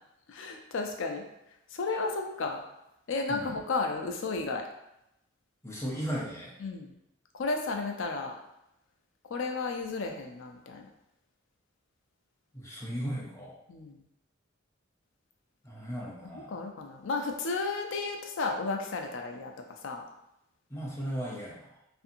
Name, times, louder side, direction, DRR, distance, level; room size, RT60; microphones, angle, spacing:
voice 1, 0.3-1.2 1.7-2.6 3.1-4.6 6.6-6.9 7.4-8.3 9.3-10.8 13.7-14.0 16.2-19.5 19.8-20.0, left 3 dB, 65° left, 3 dB, 0.4 m, -33 dB
voice 2, 5.6-6.5 12.5-13.5 15.6-16.6 20.7-21.7, equal, 15° left, -4 dB, 0.5 m, -36 dB
2.7 x 2.5 x 2.5 m, 0.83 s
head